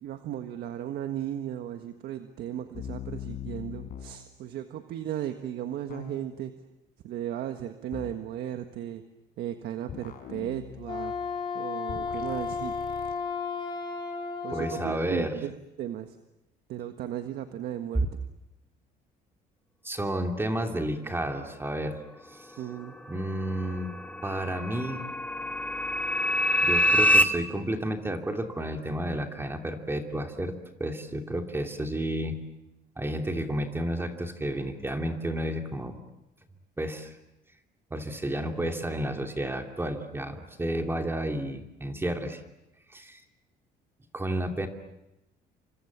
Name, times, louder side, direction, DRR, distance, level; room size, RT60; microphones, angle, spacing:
voice 1, 0.0-6.5 7.0-9.0 9.4-11.1 11.5-12.7 14.4-16.2 16.7-18.0 22.6-23.0, right 11 dB, 75° right, 7 dB, 1.5 m, -36 dB
sound 1, 2.7-4.2 5.9-6.4 7.9-8.3 9.9-11.4 11.9-13.2, left 10 dB, 60° left, 4.4 m, -41 dB
Wind instrument woodwind instrument, 10.8-14.9, left 5 dB, 30° left, 4.1 m, -33 dB
voice 2, 14.5-15.4 19.8-22.0 22.3-22.5 23.1-25.1 26.6-32.5 33.0-36.0 36.8-37.2 37.9-42.4 42.9-43.2 44.1-44.7, right 1 dB, 15° right, 4 dB, 2.8 m, -31 dB
sound 2, 22.9-27.2, equal, 10° left, 1.5 m, -25 dB
29.0 x 25.5 x 7.3 m, 0.92 s
cardioid pair, 110°, 17 cm